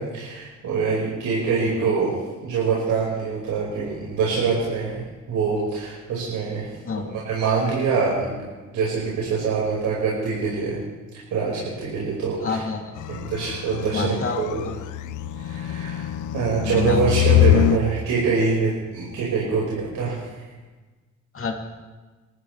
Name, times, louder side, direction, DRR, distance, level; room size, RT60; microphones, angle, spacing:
voice 1, 0.0-2.1 2.4-6.8 7.1-8.4 8.7-10.8 11.1-12.6 13.1-14.6 15.4-16.1 16.3-20.3, right 5 dB, 85° right, -6 dB, 5.3 m, -24 dB
voice 2, 12.4-13.0 13.9-14.7 16.6-17.2 21.3-21.5, left 4 dB, 45° left, 1 dB, 3.1 m, -28 dB
sound 1, 13.0-17.8, left 11 dB, 80° left, 0.7 m, -23 dB
26.5 x 14.0 x 3.4 m, 1.3 s
cardioid pair, 90°, 30 cm